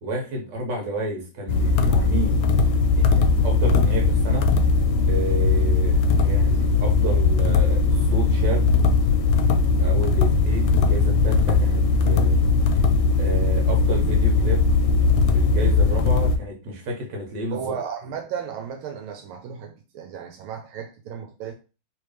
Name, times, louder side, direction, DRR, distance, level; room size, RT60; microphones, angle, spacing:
voice 1, 0.0-2.4 3.0-4.5 5.1-8.7 9.5-12.4 13.2-14.6 15.3-17.7, right 1 dB, 60° right, 1.7 m, -31 dB
sound 1, 1.5-16.4, left 4 dB, 75° left, 1.3 m, -19 dB
voice 2, 17.5-21.5, right 7 dB, 85° right, 1.4 m, -34 dB
3.4 x 3.1 x 3.2 m
omnidirectional pair, 2.3 m